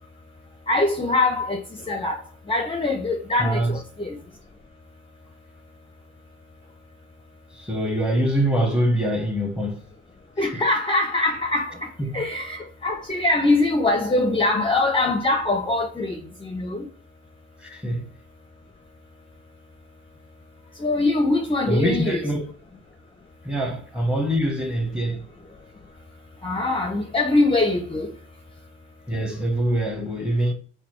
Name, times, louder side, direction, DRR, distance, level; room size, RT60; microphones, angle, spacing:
voice 1, 0.7-1.6 1.9-2.2 2.5-4.2 10.4-11.9 12.1-16.9 20.8-22.2 26.4-28.1, left 2 dB, 20° left, 0.6 m, -23 dB
voice 2, 3.4-3.8 7.5-9.8 12.0-12.2 14.2-14.6 17.6-18.1 21.7-22.5 23.4-25.3 29.1-30.5, right 1 dB, 5° right, 1.0 m, -24 dB
4.0 x 2.6 x 3.0 m
cardioid pair, 90°, 30 cm